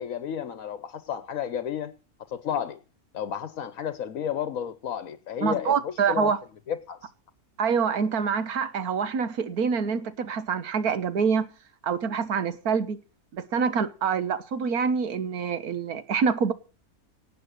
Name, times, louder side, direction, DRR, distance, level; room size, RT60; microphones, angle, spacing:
voice 1, 0.0-1.9 2.3-2.8 3.1-6.3 6.7-7.1, left 9 dB, 70° left, 13 dB, 1.3 m, -32 dB
voice 2, 5.4-6.4 7.6-11.5 11.8-13.0 13.3-16.5, right 6 dB, 85° right, 13 dB, 1.7 m, -26 dB
18.0 x 7.5 x 6.5 m, 0.37 s
omnidirectional pair, 1.6 m